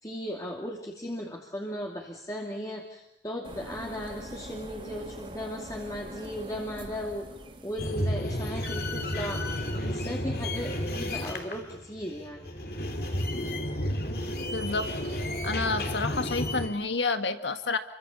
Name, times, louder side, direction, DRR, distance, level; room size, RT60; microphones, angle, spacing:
voice 1, 0.0-7.3 7.6-9.4 9.7-12.5, equal, 20° left, -1 dB, 2.5 m, -36 dB
sound 1, 3.4-8.2, right 1 dB, 30° right, 3.5 m, -43 dB
sound 2, 7.8-16.7, left 1 dB, 55° left, 3.2 m, -32 dB
voice 2, 14.5-14.9 15.4-17.8, left 3 dB, 85° left, 8 dB, 1.9 m, -29 dB
29.0 x 24.5 x 7.1 m, 0.80 s
head